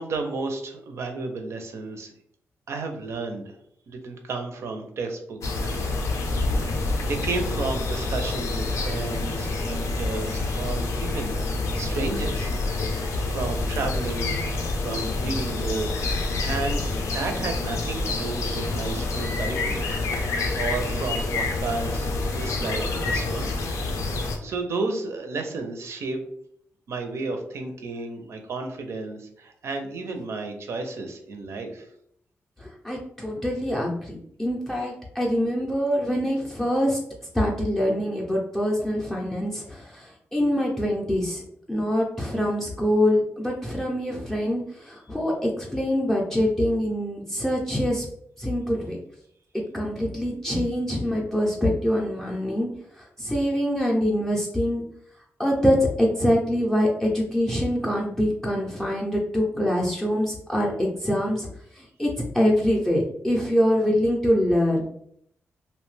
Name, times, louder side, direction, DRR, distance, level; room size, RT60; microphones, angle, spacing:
voice 1, 0.0-2.1 2.7-3.6 3.9-5.4 5.7-6.2 6.4-12.5 12.9-16.8 17.1-19.9 20.2-26.2 26.9-31.9, right 3 dB, 60° right, 5 dB, 0.5 m, -33 dB
sound 1, 5.4-24.4, left 2 dB, 85° left, 0.5 m, -27 dB
voice 2, 32.6-37.0 37.3-40.1 40.3-41.4 41.7-48.1 48.4-49.0 49.7-52.7 53.2-54.8 55.4-61.5 61.8-62.1 62.3-64.9, equal, 10° left, -3 dB, 0.5 m, -24 dB
2.6 x 2.1 x 3.1 m, 0.68 s
wide cardioid pair, 150°, 5 cm